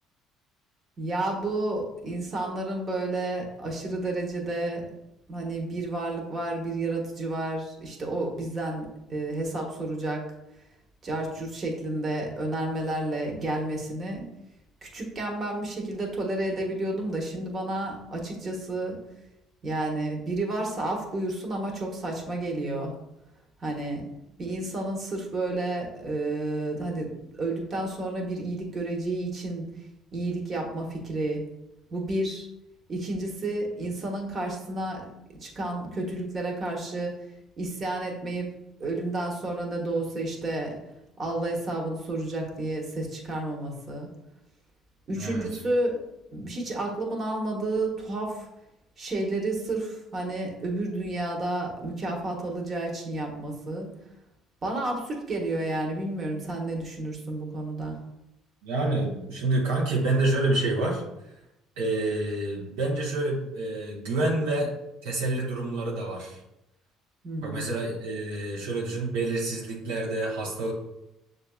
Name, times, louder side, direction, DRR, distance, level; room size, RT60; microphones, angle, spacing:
voice 1, 1.0-4.8 5.3-10.2 11.0-14.2 14.8-19.0 19.6-22.9 23.6-24.1 24.4-27.1 27.4-29.7 30.1-31.4 31.9-32.5 32.9-35.0 35.4-37.1 37.6-38.5 38.8-40.7 41.2-44.1 45.1-46.0 46.3-48.5 49.0-53.9 54.6-58.0 67.2-67.7, right 2 dB, 40° right, 0 dB, 1.2 m, -31 dB
voice 2, 45.1-45.4 58.6-61.0 61.8-64.7 65.0-66.4 67.4-70.7, right 2 dB, 80° right, -3 dB, 0.9 m, -28 dB
6.7 x 2.7 x 2.3 m, 0.88 s
hypercardioid pair, 60°, 0 cm